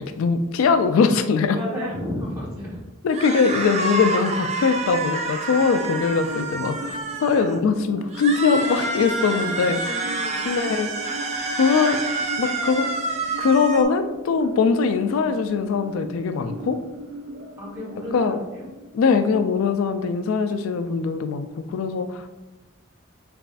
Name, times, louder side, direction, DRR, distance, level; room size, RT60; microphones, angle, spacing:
voice 1, 0.0-1.6 3.0-10.0 10.4-10.9 11.6-12.0 12.4-12.9 13.4-16.8 18.1-18.4 18.9-22.3, left 5 dB, 80° left, 9 dB, 0.3 m, -21 dB
voice 2, 1.5-2.8 9.6-10.5 17.6-18.7, left 1 dB, 15° right, -7 dB, 1.2 m, -33 dB
sound 1, 3.1-7.6 8.1-13.8, right 3 dB, 30° right, 0.3 m, -28 dB
sound 2, 4.7-19.7, equal, 85° right, 1.0 m, -40 dB
4.0 x 3.4 x 2.5 m, 1.0 s
head